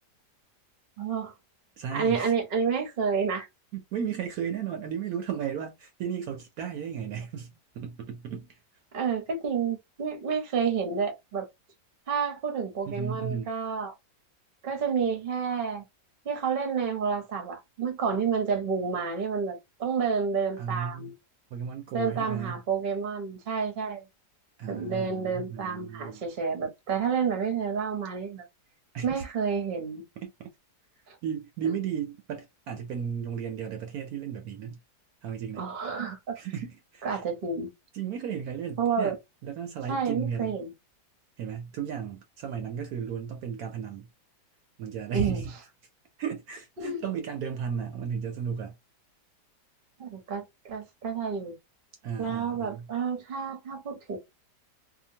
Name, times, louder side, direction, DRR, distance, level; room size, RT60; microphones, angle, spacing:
voice 1, 1.0-1.3 1.9-3.5 8.9-11.5 12.1-13.9 14.6-15.8 16.2-21.1 21.9-24.0 24.7-28.5 29.0-30.0 31.1-31.2 31.6-31.7 35.6-36.4 37.0-37.7 38.8-39.2 39.9-40.7 45.1-45.5 46.8-47.0 50.0-51.5 52.2-54.2, right 6 dB, 45° right, 0.8 m, -29 dB
voice 2, 1.8-2.3 3.7-8.5 12.9-13.5 20.6-21.1 21.5-22.6 24.6-26.2 28.9-29.2 30.2-30.3 31.2-34.8 35.2-35.6 36.4-37.2 37.9-39.2 39.4-40.6 41.4-44.1 44.8-45.5 46.2-48.7 52.0-52.9, right 7 dB, 70° right, 1.0 m, -34 dB
2.8 x 2.2 x 2.7 m
omnidirectional pair, 1.8 m